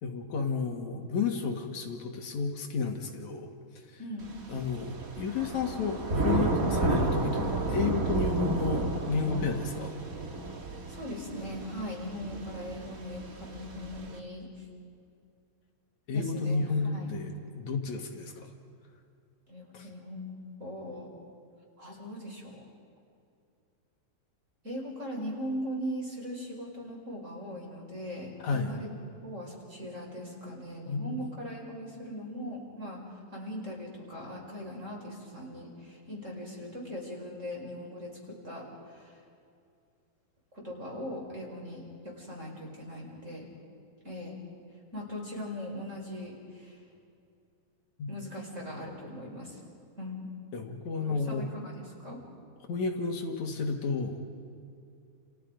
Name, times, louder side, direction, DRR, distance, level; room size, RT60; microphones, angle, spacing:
voice 1, 0.0-3.5 3.9-4.0 4.5-9.9 16.1-18.5 19.7-19.9 28.4-28.7 30.9-31.2 48.0-48.1 50.5-51.5 52.7-54.3, left 4 dB, 55° left, 3 dB, 2.9 m, -32 dB
voice 2, 4.0-4.3 10.9-14.7 16.1-17.1 19.5-21.1 21.8-22.6 24.6-28.9 29.2-39.2 40.5-43.5 44.0-44.4 44.9-46.8 48.1-49.6 50.0-50.3 51.0-52.2, equal, 20° right, -1 dB, 5.0 m, -40 dB
Thunder / Rain, 4.2-14.2, right 2 dB, 45° right, 1.0 m, -32 dB
30.0 x 29.0 x 5.3 m, 2.4 s
omnidirectional pair, 4.5 m